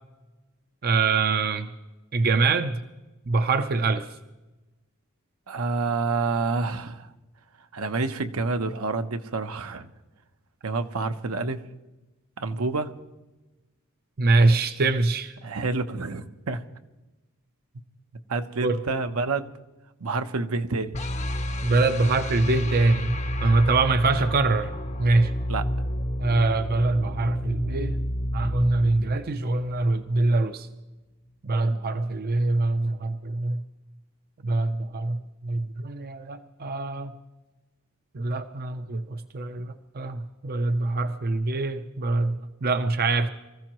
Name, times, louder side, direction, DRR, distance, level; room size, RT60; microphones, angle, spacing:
voice 1, 0.8-1.7 2.1-2.8 3.3-4.1 14.2-15.3 18.6-18.8 21.6-24.7 25.0-25.3 26.2-28.0 28.3-30.7 31.4-33.6 34.4-37.1 38.1-43.3, right 3 dB, 45° right, 9 dB, 0.6 m, -24 dB
voice 2, 5.5-7.1 7.7-9.9 10.6-11.6 12.4-12.9 15.4-16.6 18.3-19.5 20.0-20.9 25.5-25.7, right 3 dB, 75° right, 8 dB, 0.8 m, -28 dB
sound 1, 20.9-30.0, equal, 30° left, 0.7 m, -30 dB
24.5 x 15.0 x 3.0 m, 1.1 s
head